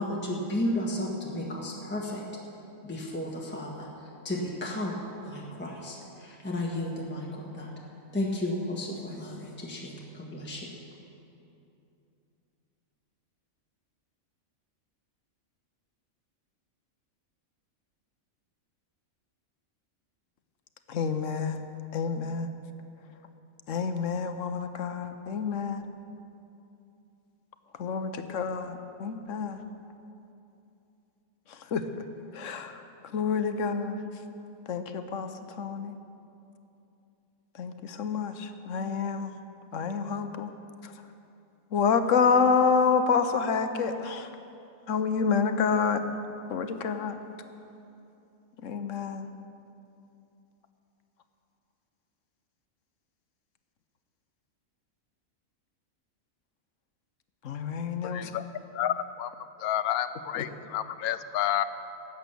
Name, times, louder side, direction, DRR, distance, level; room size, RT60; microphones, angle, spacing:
voice 1, 0.0-2.2 2.8-3.9 4.2-4.9 5.2-7.7 8.1-10.7, left 1 dB, 10° left, -3 dB, 1.4 m, -33 dB
voice 2, 20.9-21.7 21.9-22.5 23.7-25.8 27.8-29.6 31.5-31.8 32.3-32.8 33.1-34.0 34.7-35.3 35.6-35.9 37.5-39.3 39.7-40.5 40.8-40.9 41.7-44.3 44.9-46.2 46.5-47.2 48.6-49.3 57.4-58.3 60.4-60.5, left 5 dB, 65° left, 8 dB, 1.1 m, -28 dB
voice 3, 58.0-58.4 58.7-59.3 59.6-61.6, left 11 dB, 90° left, 13 dB, 1.1 m, -30 dB
17.5 x 8.3 x 6.8 m, 2.8 s
omnidirectional pair, 1.5 m